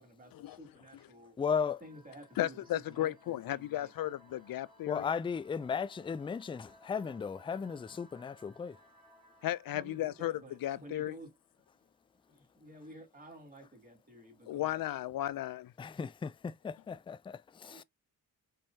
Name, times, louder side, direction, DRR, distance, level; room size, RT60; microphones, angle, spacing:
voice 1, 0.0-1.3 1.8-3.9 9.7-11.3 12.3-14.8 17.6-17.8, right 1 dB, 25° right, 3.1 m, -52 dB
voice 2, 1.4-1.8 4.9-8.8 15.8-17.8, left 6 dB, 15° left, 0.3 m, -36 dB
sound 1, 1.5-11.9, equal, 85° right, 2.3 m, -63 dB
voice 3, 2.4-5.1 9.4-11.2 14.5-15.7, left 14 dB, 70° left, 0.5 m, -35 dB
5.5 x 3.3 x 2.8 m
cardioid pair, 60°, 36 cm